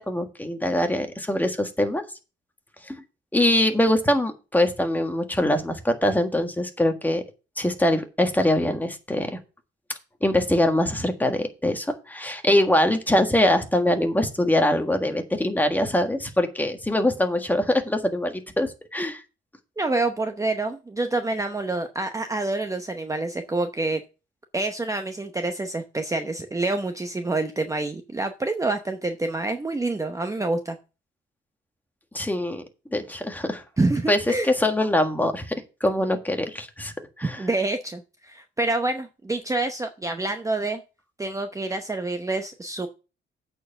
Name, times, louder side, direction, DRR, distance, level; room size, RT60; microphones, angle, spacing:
voice 1, 0.1-2.0 2.9-3.0 3.3-7.2 7.6-9.4 10.2-19.2 32.1-32.6 32.9-33.6 34.1-34.2 34.4-35.5 35.8-36.9 37.2-37.4, left 1 dB, 10° left, 6 dB, 1.6 m, -23 dB
voice 2, 19.8-24.0 24.5-30.8 33.8-34.5 37.4-40.8 41.2-42.9, right 2 dB, 15° right, 7 dB, 0.8 m, -27 dB
8.3 x 4.5 x 6.9 m, 0.31 s
cardioid pair, 90°, 20 cm